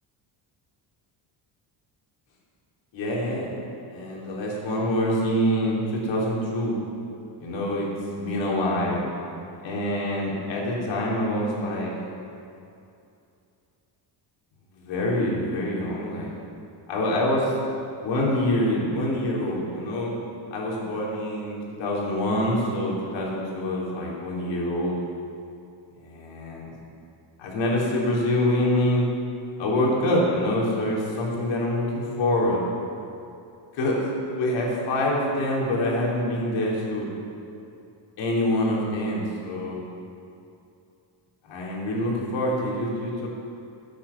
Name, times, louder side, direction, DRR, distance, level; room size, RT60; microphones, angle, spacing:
voice 1, 2.9-3.5 3.9-6.7 7.4-9.0 9.6-11.9 14.7-16.3 16.9-17.5 18.0-20.2 20.5-25.0 25.9-26.7 27.4-29.1 29.6-32.6 33.7-34.0 34.3-37.1 38.2-39.9 41.4-43.3, left 1 dB, 75° left, -4 dB, 3.8 m, -25 dB
11.5 x 9.4 x 7.3 m, 2.6 s
cardioid pair, 130°, 46 cm